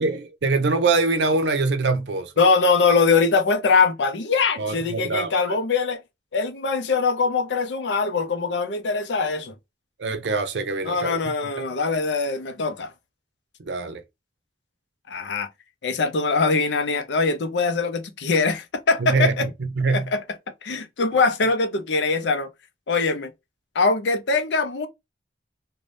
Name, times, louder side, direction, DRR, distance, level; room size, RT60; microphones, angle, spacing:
voice 1, 0.0-2.3 4.6-5.6 10.0-11.5 13.6-14.0 19.0-20.1, right 3 dB, 85° right, 0.5 m, -24 dB
voice 2, 2.4-6.0 6.3-9.5 10.8-12.9 15.1-15.5 15.8-19.5 19.9-20.2 20.6-22.5 22.9-23.3 23.7-24.9, left 4 dB, 90° left, 0.5 m, -22 dB
2.6 x 2.2 x 3.2 m
head